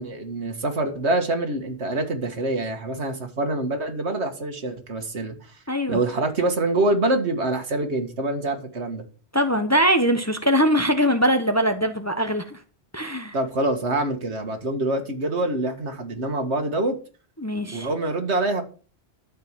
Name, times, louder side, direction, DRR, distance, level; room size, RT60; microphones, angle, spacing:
voice 1, 0.0-5.3 5.9-9.0 13.3-17.0 17.7-18.6, right 2 dB, 75° right, 2.1 m, -25 dB
voice 2, 5.7-6.0 9.3-12.6 12.9-13.3 17.4-17.9, equal, 15° left, 0.9 m, -22 dB
12.0 x 4.8 x 7.4 m
omnidirectional pair, 1.1 m